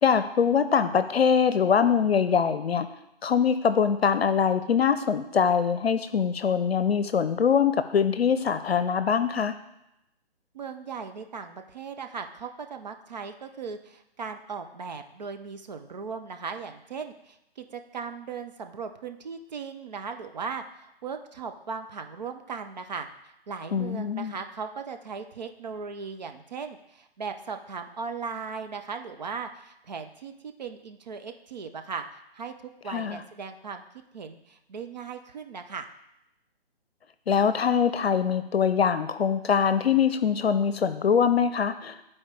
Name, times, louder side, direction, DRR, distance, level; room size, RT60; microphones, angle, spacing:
voice 1, 0.0-2.9 3.2-9.6 23.7-24.3 32.9-33.2 37.3-42.0, left 7 dB, 75° left, 11 dB, 0.6 m, -23 dB
voice 2, 10.5-32.0 32.3-33.8 34.1-35.9, right 5 dB, 45° right, 6 dB, 0.6 m, -38 dB
12.0 x 4.2 x 3.3 m, 0.86 s
figure-of-eight pair, 145°, 31 cm